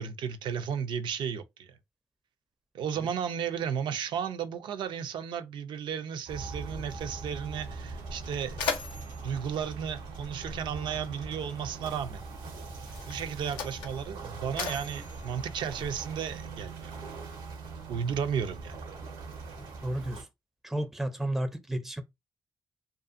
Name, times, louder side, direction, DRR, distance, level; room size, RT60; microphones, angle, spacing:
voice 1, 0.0-1.8 2.7-8.6 9.2-12.2 13.1-16.9 17.9-18.8, right 7 dB, 75° right, 0.4 m, -34 dB
sound 1, 6.3-20.2, right 4 dB, 90° right, 0.8 m, -41 dB
Mechanisms, 7.6-7.7 8.1-10.8 11.8-12.0 12.8-16.4, left 6 dB, 85° left, 0.5 m, -39 dB
voice 2, 19.8-20.3 20.6-22.0, right 1 dB, ahead, 0.4 m, -32 dB
2.5 x 2.3 x 2.4 m
supercardioid pair, 55°, 8 cm